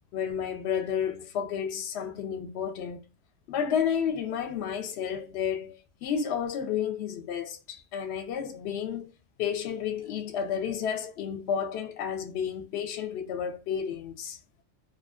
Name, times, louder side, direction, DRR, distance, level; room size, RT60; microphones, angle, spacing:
voice 1, 0.1-3.0 3.5-9.1 9.4-14.4, left 8 dB, 70° left, 0.8 m, -31 dB
2.4 x 2.2 x 2.3 m
omnidirectional pair, 1.2 m